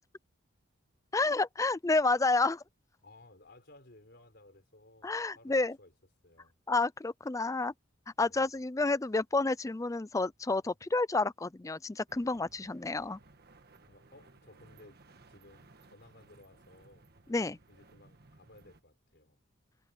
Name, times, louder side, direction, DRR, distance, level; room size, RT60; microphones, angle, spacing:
voice 1, 1.1-2.6 5.0-5.8 6.7-7.7 8.2-13.2 17.3-17.6, left 3 dB, 15° left, 0.4 m, -30 dB
voice 2, 3.0-5.9 6.2-6.6 8.2-8.5 13.9-15.0 15.3-17.1 17.7-19.4, left 2 dB, 55° left, 4.1 m, -58 dB
sound 1, 12.1-18.8, right 3 dB, 50° right, 1.6 m, -60 dB
head